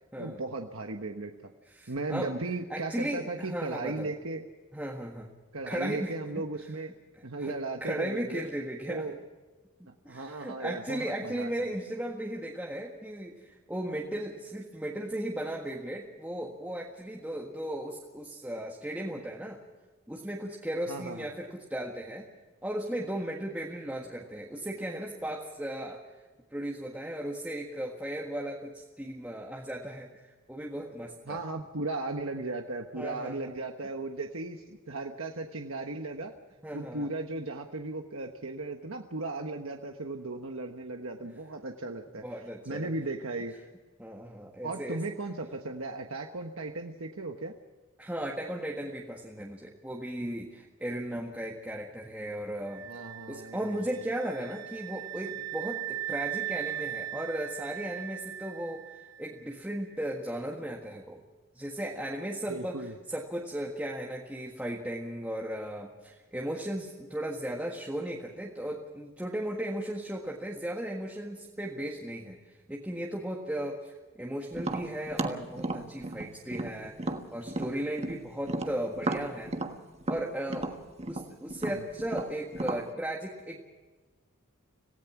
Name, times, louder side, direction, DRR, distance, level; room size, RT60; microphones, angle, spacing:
voice 1, 0.2-1.3 1.9-4.4 5.5-6.9 7.2-8.4 8.9-9.1 10.1-11.7 20.9-21.3 31.3-36.3 36.7-42.2 42.6-43.5 44.6-47.5 52.9-53.6 62.5-62.9 81.7-81.8, right 2 dB, 75° right, 3 dB, 1.3 m, -36 dB
voice 2, 1.7-2.3 2.7-4.1 4.7-5.3 5.6-6.4 7.4-9.2 9.8-19.6 20.1-22.3 22.6-26.0 26.5-31.4 32.9-33.5 36.6-37.1 42.2-42.9 44.0-45.0 48.0-52.9 53.3-58.8 59.2-61.2 61.5-77.0 77.3-79.6 80.1-80.7 81.1-83.6, right 1 dB, 10° right, -2 dB, 1.6 m, -36 dB
sound 1, 52.7-59.5, right 12 dB, 50° right, 1.3 m, -39 dB
Tap, 74.6-78.2 78.5-82.9, right 2 dB, 30° right, 1.4 m, -34 dB
26.5 x 17.0 x 6.0 m, 1.3 s
head